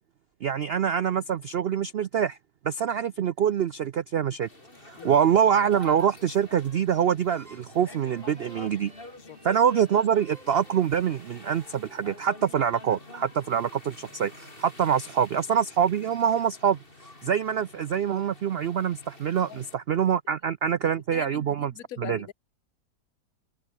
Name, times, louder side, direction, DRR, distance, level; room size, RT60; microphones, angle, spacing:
voice 1, 0.4-2.4 2.6-4.5 4.9-8.9 9.4-16.8 17.2-21.7 22.0-22.2, right 8 dB, 70° right, 0.5 m, -25 dB
sound 1, 4.4-19.7, left 2 dB, 35° left, 4.1 m, -47 dB
sound 2, 7.2-12.7, right 2 dB, 50° right, 5.5 m, -56 dB
voice 2, 21.1-22.3, left 11 dB, 65° left, 1.3 m, -42 dB
omnidirectional pair, 1.7 m